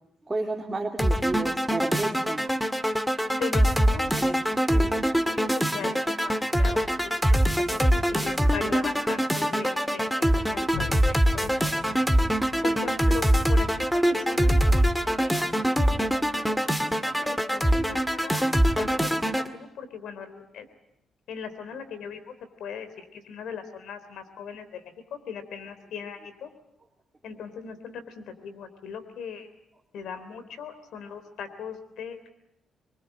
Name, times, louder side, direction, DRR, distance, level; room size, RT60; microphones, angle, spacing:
voice 1, 0.3-2.4, right 2 dB, 20° right, 1 dB, 2.6 m, -31 dB
sound 1, 1.0-19.5, equal, ahead, 1.9 m, -24 dB
voice 2, 3.3-4.4 4.7-10.1 10.3-11.7 12.6-15.5 15.7-16.0 17.2-18.4 18.8-20.7 21.3-24.8 25.1-26.5 27.2-29.5 29.9-32.3, left 6 dB, 85° left, 10 dB, 3.4 m, -39 dB
Boom, 10.7-17.6 18.2-18.3, left 4 dB, 65° left, 5.8 m, -43 dB
25.5 x 22.5 x 9.1 m, 0.83 s
cardioid pair, 100°, 0 cm